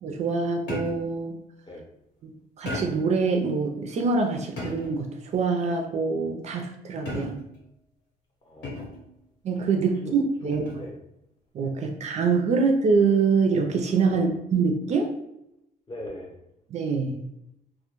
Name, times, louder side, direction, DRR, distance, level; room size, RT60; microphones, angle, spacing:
voice 1, 0.0-1.4 2.2-5.1 5.3-7.4 9.4-10.6 11.5-15.1 16.7-17.2, right 4 dB, 40° right, 3 dB, 0.4 m, -25 dB
sound 1, 0.7-1.2 2.7-3.2 4.6-5.1 7.1-7.6 8.6-9.1 10.5-10.9, left 2 dB, 85° left, 1.1 m, -35 dB
voice 2, 8.4-8.9 10.0-10.2 10.4-10.9 14.1-14.3 15.9-16.3, left 1 dB, 30° left, -1 dB, 0.7 m, -40 dB
2.1 x 2.1 x 2.9 m, 0.84 s
cardioid pair, 110°, 17 cm